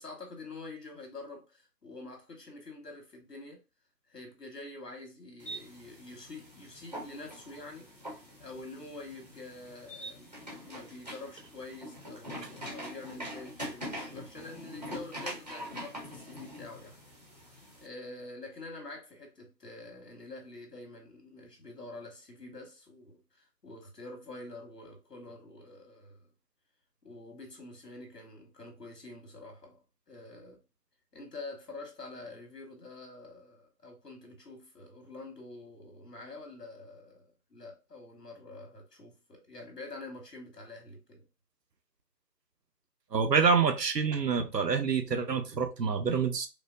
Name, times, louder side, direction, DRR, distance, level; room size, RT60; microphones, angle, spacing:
voice 1, 0.0-3.6 4.1-17.0 17.8-26.3 27.0-29.8 30.1-30.6 31.1-41.2, left 2 dB, 75° left, 1.8 m, -47 dB
sound 1, 5.4-17.9, equal, 25° right, 0.8 m, -44 dB
voice 2, 43.1-46.5, right 5 dB, 85° right, 0.9 m, -27 dB
4.9 x 2.1 x 2.5 m
figure-of-eight pair, 160°, 48 cm